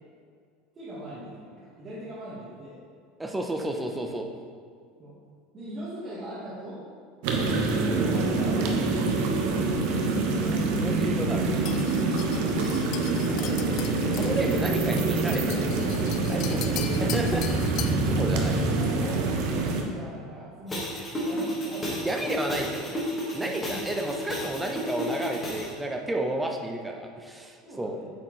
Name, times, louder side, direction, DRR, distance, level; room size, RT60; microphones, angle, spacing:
voice 1, 0.7-2.8 5.0-5.1 5.5-6.8 7.2-10.6 12.0-12.8 13.2-14.0 16.8-17.9 18.4-20.9 21.2-22.4 23.3-23.8 27.6-28.1, right 1 dB, 30° right, -10 dB, 1.5 m, -40 dB
voice 2, 3.2-4.3 10.8-11.6 14.1-15.7 16.3-16.6 17.0-17.4 18.1-18.6 22.0-23.0 23.3-28.0, right 1 dB, 10° right, 2 dB, 0.6 m, -31 dB
sound 1, 7.2-19.8, right 3 dB, 70° right, 0.8 m, -25 dB
sound 2, 11.7-18.1, left 10 dB, 55° left, 0.3 m, -39 dB
sound 3, 20.7-25.7, equal, 20° left, 1.6 m, -32 dB
8.0 x 4.2 x 3.1 m, 2.1 s
supercardioid pair, 135°, 0 cm